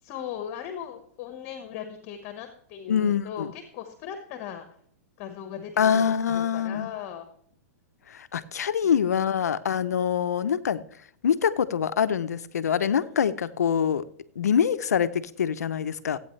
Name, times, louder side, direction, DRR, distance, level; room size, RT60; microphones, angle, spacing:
voice 1, 0.0-4.7 5.2-7.3 8.8-8.9, left 9 dB, 40° left, 7 dB, 1.4 m, -38 dB
voice 2, 2.9-3.5 5.8-6.9 8.1-10.8 11.2-14.0 14.4-16.2, left 8 dB, 90° left, 14 dB, 0.7 m, -25 dB
15.5 x 8.9 x 3.3 m, 0.62 s
hypercardioid pair, 130°, 8 cm